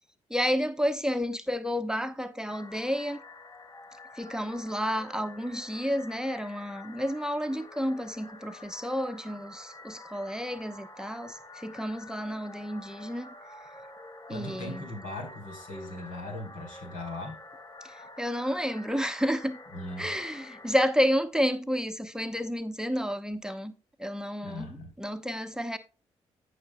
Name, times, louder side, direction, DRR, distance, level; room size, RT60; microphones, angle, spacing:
voice 1, 0.3-3.2 4.1-13.3 14.3-14.9 17.8-19.6 20.0-23.7 24.0-24.7 25.0-25.8, equal, 5° right, 0.9 m, -30 dB
sound 1, 2.5-20.9, left 2 dB, 25° left, 1.2 m, -48 dB
voice 2, 14.3-17.4 19.7-20.1 24.4-24.9, left 1 dB, 75° left, 4.0 m, -39 dB
14.0 x 6.5 x 2.3 m
hypercardioid pair, 45°, 14 cm